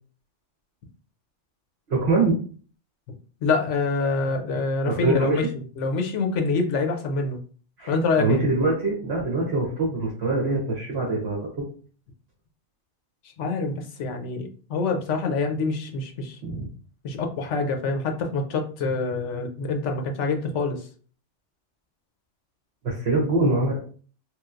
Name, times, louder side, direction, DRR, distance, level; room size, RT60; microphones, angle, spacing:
voice 1, 1.9-2.4 4.8-5.5 7.8-11.6 16.4-16.7 22.8-23.8, right 2 dB, 60° right, -4 dB, 1.1 m, -24 dB
voice 2, 3.4-7.4 7.9-8.4 13.4-16.4 17.0-20.9, left 3 dB, 80° left, 4 dB, 1.0 m, -26 dB
3.1 x 2.9 x 2.4 m, 0.41 s
omnidirectional pair, 1.2 m